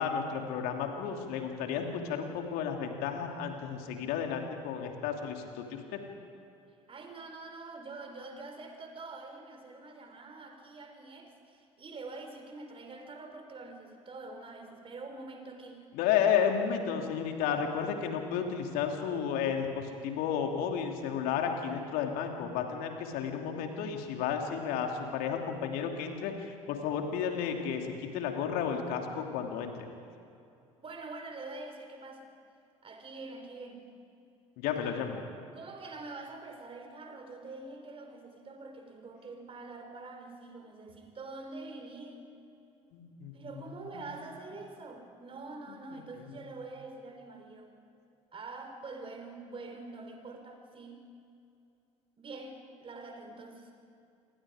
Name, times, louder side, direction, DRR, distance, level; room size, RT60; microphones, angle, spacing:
voice 1, 0.0-5.8 15.9-29.7 34.6-35.2 42.9-43.3 43.7-44.1 45.9-46.0, left 7 dB, 60° left, 3 dB, 2.9 m, -32 dB
voice 2, 6.9-15.8 30.8-32.3 32.8-33.9 34.8-35.0 35.5-42.3 43.3-47.7 48.3-51.0 52.2-53.7, right 3 dB, 30° right, 4 dB, 4.4 m, -45 dB
28.0 x 23.5 x 5.0 m, 2.6 s
figure-of-eight pair, 60°, 17 cm